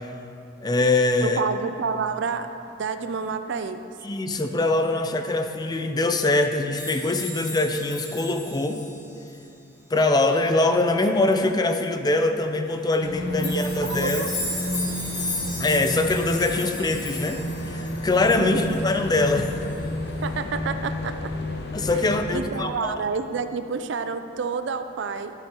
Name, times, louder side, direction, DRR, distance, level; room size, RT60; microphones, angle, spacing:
voice 1, 0.6-1.4 4.0-8.8 9.9-14.3 15.6-19.5 21.7-23.0, left 2 dB, 20° left, 6 dB, 0.4 m, -23 dB
voice 2, 1.2-2.5 2.8-3.8 13.4-14.8 18.4-18.7 20.2-21.1 21.9-25.3, right 5 dB, 65° right, 9 dB, 0.4 m, -29 dB
sound 1, 6.8-9.3 13.4-19.3 19.6-19.8 20.1-20.2, left 2 dB, 40° left, 2.4 m, -35 dB
sound 2, 13.0-22.4, left 1 dB, 60° left, 0.8 m, -31 dB
12.0 x 8.3 x 3.0 m, 2.6 s
head